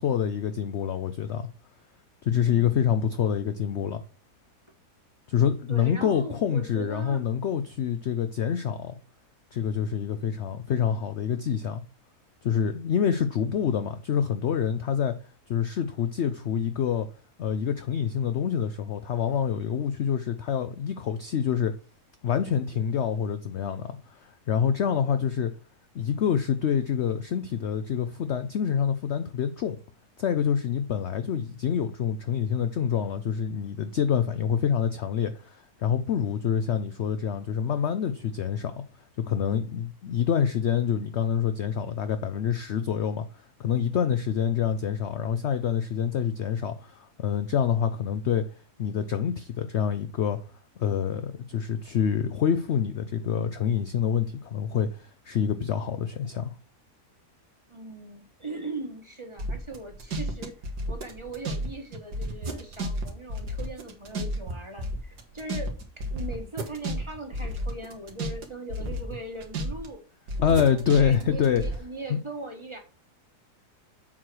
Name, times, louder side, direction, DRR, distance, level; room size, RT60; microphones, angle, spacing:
voice 1, 0.0-1.5 2.2-4.0 5.3-9.0 9.5-11.8 12.4-15.1 15.5-17.1 17.4-21.7 22.2-25.5 25.9-29.8 30.2-38.8 39.2-48.5 48.8-50.4 50.8-56.5 70.4-71.6 72.1-72.2, left 8 dB, 65° left, 0.7 m, -26 dB
voice 2, 2.4-2.9 5.7-7.2 57.7-70.0 70.5-72.8, right 2 dB, 20° right, 1.3 m, -40 dB
sound 1, 59.4-61.7 61.9-64.5 64.8-68.4 68.7-69.9 70.3-71.8, right 1 dB, 85° right, 2.0 m, -32 dB
7.5 x 4.7 x 6.1 m
omnidirectional pair, 1.7 m